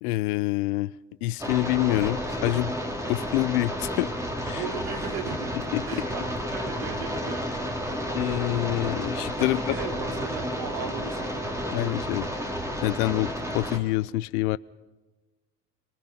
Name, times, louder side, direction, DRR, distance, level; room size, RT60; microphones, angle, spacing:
voice 1, 0.0-0.9 1.2-2.7 3.1-4.1 4.4-4.6 5.7-5.8 8.1-9.6 11.7-12.3 12.8-14.6, left 19 dB, 85° left, 20 dB, 0.7 m, -26 dB
sound 1, 1.4-13.8, equal, 5° right, 3.5 m, -31 dB
voice 2, 4.5-5.5 5.8-8.1 9.4-11.8, right 6 dB, 85° right, 3 dB, 3.5 m, -37 dB
26.5 x 20.0 x 5.6 m, 1.2 s
hypercardioid pair, 75°, 44 cm